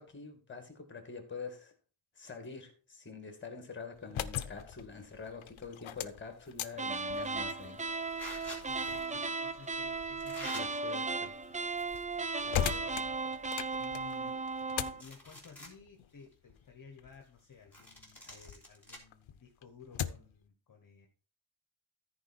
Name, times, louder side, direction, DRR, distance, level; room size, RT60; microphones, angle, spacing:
voice 1, 0.0-1.7 2.2-7.8 10.5-11.3 12.5-13.1, left 4 dB, 25° left, 2.2 m, -46 dB
sound 1, 3.9-18.6 19.0-20.4, left 10 dB, 80° left, 0.7 m, -42 dB
sound 2, 6.7-15.0, right 3 dB, 15° right, 0.4 m, -36 dB
sound 3, 7.2-7.4 8.2-8.6 9.5-9.7 10.2-10.6 11.6-12.2 12.5-12.6 13.2-13.3 13.6-14.6 14.9-15.7 16.2-16.3 17.7-19.0, left 1 dB, 5° left, 3.3 m, -47 dB
voice 2, 8.5-10.9 12.3-12.5 13.8-14.5 14.7-21.1, left 6 dB, 45° left, 1.4 m, -55 dB
14.0 x 4.8 x 4.4 m
wide cardioid pair, 160°, 47 cm